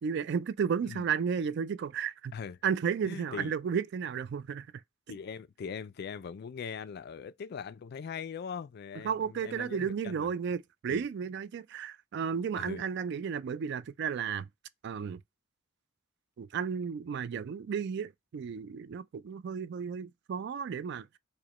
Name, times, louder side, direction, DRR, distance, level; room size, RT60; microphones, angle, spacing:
voice 1, 0.0-2.3 2.6-4.8 9.0-14.5 14.8-15.2 16.4-21.2, right 7 dB, 60° right, 0.3 m, -33 dB
voice 2, 3.0-3.5 5.1-10.3 10.9-11.0 12.5-12.9, left 6 dB, 50° left, 0.3 m, -41 dB
4.9 x 2.2 x 2.9 m
head